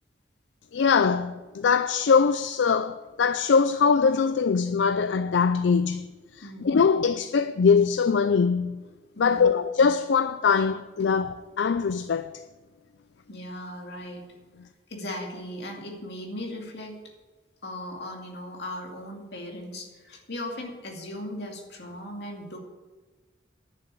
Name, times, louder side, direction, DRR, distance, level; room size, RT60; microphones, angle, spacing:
voice 1, 0.7-6.1 6.3-8.8 9.2-12.3, left 5 dB, 80° left, 0.4 m, -22 dB
voice 2, 6.4-6.8 9.1-9.6 13.3-14.3 14.9-17.0 17.6-22.6, left 1 dB, 65° left, 2.4 m, -38 dB
11.0 x 6.9 x 8.8 m
head